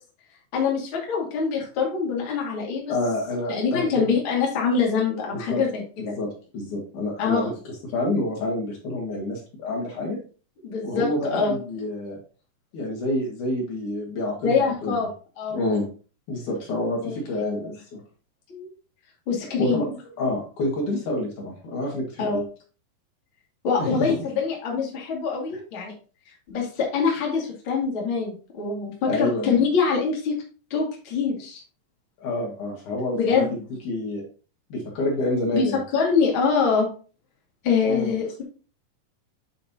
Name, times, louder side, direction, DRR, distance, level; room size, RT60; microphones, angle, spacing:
voice 1, 0.5-2.9 3.5-6.1 7.2-7.5 10.6-11.6 14.4-15.1 15.4-15.6 17.0-17.6 18.5-18.7 19.3-19.9 22.2-22.4 23.6-25.9 26.5-30.3 30.7-31.6 33.1-33.5 35.5-35.7 35.9-36.9 37.6-38.4, left 5 dB, 40° left, -2 dB, 2.3 m, -24 dB
voice 2, 2.9-4.1 5.3-5.6 6.0-6.3 6.5-10.2 10.8-12.2 12.7-15.0 15.5-15.9 16.3-18.0 19.4-19.9 20.2-22.4 23.8-24.3 29.1-29.6 32.2-33.6 33.8-34.2 34.7-35.8 37.9-38.1, left 1 dB, 65° left, -1 dB, 3.0 m, -28 dB
8.9 x 5.2 x 2.8 m, 0.37 s
omnidirectional pair, 3.9 m